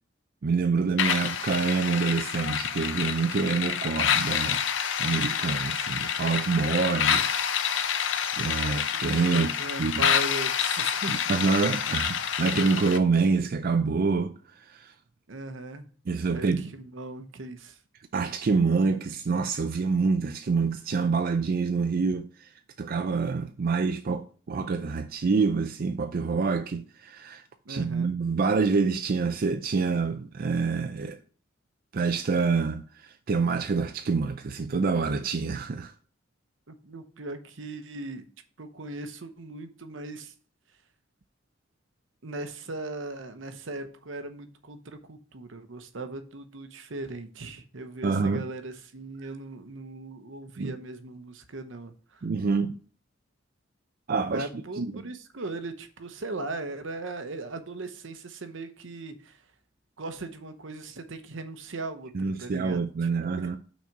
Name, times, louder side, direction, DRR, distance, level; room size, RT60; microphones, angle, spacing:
voice 1, 0.4-4.6 5.0-7.9 8.4-9.5 9.8-10.0 11.1-14.9 16.1-16.7 18.1-22.5 22.8-27.4 27.7-31.2 31.9-35.9 48.0-48.5 50.6-50.7 52.2-52.8 54.1-54.5 54.8-55.0 62.1-63.6, right 4 dB, 50° right, 0.4 m, -26 dB
sound 1, 1.0-13.0, left 8 dB, 70° left, 0.6 m, -28 dB
voice 2, 9.3-11.2 15.3-15.9 16.3-17.8 27.6-28.1 36.7-38.3 38.6-40.3 42.2-52.3 54.2-59.4 60.0-62.1 62.4-62.8 63.3-63.6, right 2 dB, 75° right, 0.9 m, -38 dB
6.0 x 4.2 x 5.8 m
head